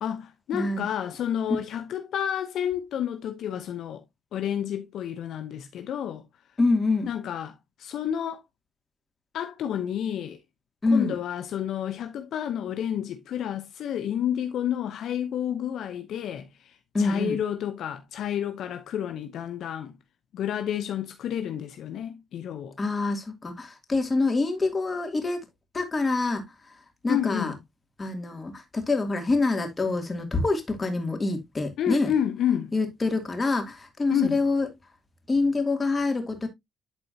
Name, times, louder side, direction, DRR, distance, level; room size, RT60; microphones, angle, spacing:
voice 1, 0.0-4.0 4.3-6.2 7.1-8.4 9.3-10.4 10.9-19.9 20.3-22.8 27.1-27.6 31.8-32.7 34.1-34.4, left 9 dB, 75° left, 0.8 m, -30 dB
voice 2, 0.5-0.9 6.6-7.1 10.8-11.1 16.9-17.4 22.8-25.4 25.7-26.4 27.0-27.5 28.0-32.1 32.7-34.7 35.3-36.5, left 3 dB, 30° left, 2.6 m, -26 dB
11.5 x 4.2 x 2.8 m
cardioid pair, 75°, 0 cm